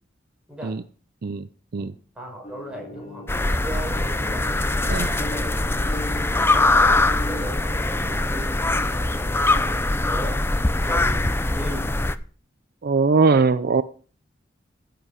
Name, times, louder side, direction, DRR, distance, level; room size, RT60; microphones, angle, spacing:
voice 1, 2.2-4.5 5.2-5.6 6.3-10.4 10.8-12.2, right 1 dB, 5° right, -1 dB, 5.5 m, -37 dB
sound 1, 2.4-7.5, equal, 35° left, 3.2 m, -38 dB
sound 2, 3.3-12.2, left 2 dB, 15° left, 0.5 m, -22 dB
voice 2, 12.8-13.8, right 4 dB, 55° right, 13 dB, 0.5 m, -20 dB
15.0 x 8.0 x 4.9 m, 0.41 s
head